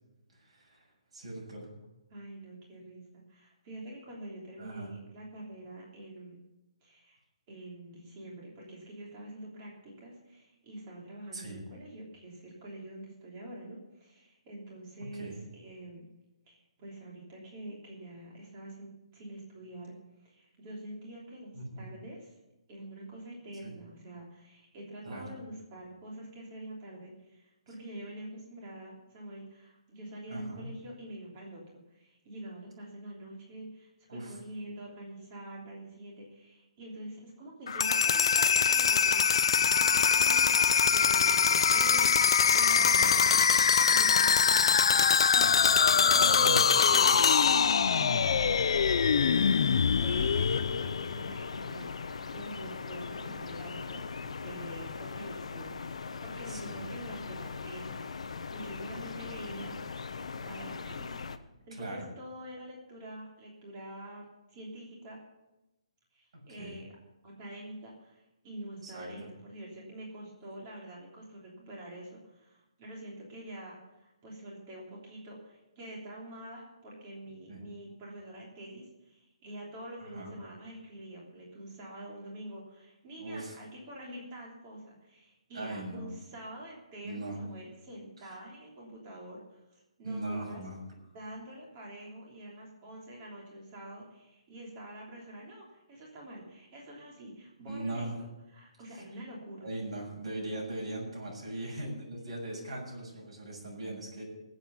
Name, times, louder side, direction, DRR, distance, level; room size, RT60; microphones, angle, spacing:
voice 1, 0.4-0.8 1.1-1.8 4.6-4.9 11.3-11.6 15.1-15.4 21.5-21.9 23.6-23.7 25.0-25.4 30.3-30.7 34.1-34.3 41.7-41.8 42.7-43.2 46.1-46.6 50.0-50.3 56.5-56.9 61.7-62.0 66.3-66.8 68.8-69.1 77.5-77.6 80.0-80.3 83.2-83.6 85.5-86.1 87.0-87.4 90.0-90.8 97.7-98.1 99.6-104.2, right 2 dB, 60° right, -1 dB, 6.9 m, -39 dB
voice 2, 2.1-6.4 6.8-7.2 7.5-16.0 16.5-19.9 20.2-22.3 22.7-47.6 48.0-48.9 49.2-49.7 50.0-59.8 60.4-61.2 61.7-65.2 66.1-66.9 67.2-90.6 91.1-98.1 98.5-99.7 101.5-101.8, right 1 dB, 20° right, -3 dB, 3.2 m, -46 dB
sound 1, 37.7-51.5, left 6 dB, 50° left, 0.5 m, -23 dB
sound 2, 45.4-61.4, left 5 dB, 70° left, 0.9 m, -40 dB
18.5 x 8.0 x 6.9 m, 0.97 s
hypercardioid pair, 175°, 3 cm